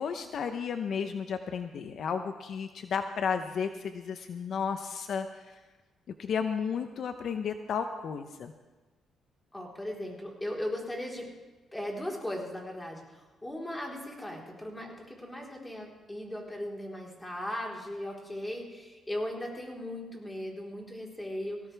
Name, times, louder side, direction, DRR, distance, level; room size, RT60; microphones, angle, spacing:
voice 1, 0.0-5.6 6.2-8.5, left 6 dB, 60° left, 7 dB, 0.8 m, -33 dB
voice 2, 9.5-11.3 11.7-21.6, left 1 dB, 10° left, -2 dB, 4.1 m, -37 dB
19.0 x 17.0 x 3.5 m, 1.2 s
cardioid pair, 90°, 0 cm